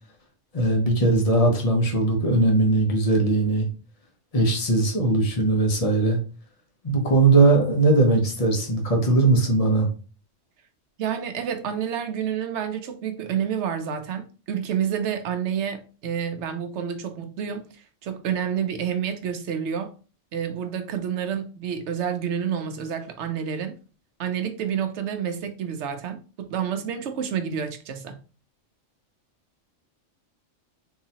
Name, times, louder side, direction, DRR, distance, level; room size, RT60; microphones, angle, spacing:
voice 1, 0.5-3.7 4.3-6.2 6.8-9.9, right 2 dB, 35° left, 0.9 m, -20 dB
voice 2, 11.0-19.9 20.3-23.8 24.2-28.2, right 8 dB, 70° right, 0.9 m, -29 dB
3.9 x 2.8 x 2.7 m
omnidirectional pair, 1.3 m